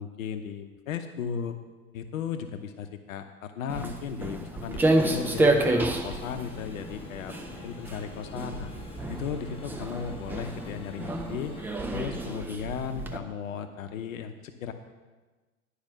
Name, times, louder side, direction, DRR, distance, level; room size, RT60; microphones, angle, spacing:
voice 1, 0.0-1.6 1.9-7.3 7.6-8.7 9.1-11.5 11.9-14.7, left 7 dB, 65° left, 8 dB, 0.8 m, -36 dB
Walk footsteps, 3.7-13.2, right 2 dB, 5° right, 0.3 m, -29 dB
sound 1, 4.7-12.4, left 2 dB, 10° left, 1.2 m, -44 dB
10.5 x 4.8 x 6.7 m, 1.3 s
figure-of-eight pair, 85°, 44 cm